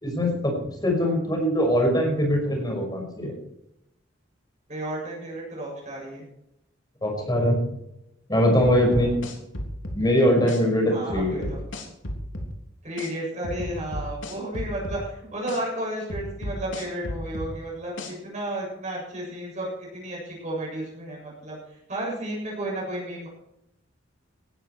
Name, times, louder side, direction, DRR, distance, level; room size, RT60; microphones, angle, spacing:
voice 1, 0.0-3.4 7.0-7.7 8.3-9.2 9.9-11.5, equal, 20° left, 1 dB, 5.8 m, -22 dB
voice 2, 4.7-6.2 8.9-9.0 10.9-11.6 12.8-21.6 21.9-23.3, right 1 dB, 40° right, -4 dB, 7.5 m, -33 dB
sound 1, 8.6-10.0 10.5-10.6 11.1-12.5 13.0-13.1 13.4-15.0 15.5-15.6 16.1-17.5 18.0-18.1, left 1 dB, 75° left, 3.5 m, -33 dB
18.5 x 13.0 x 4.7 m, 0.82 s
head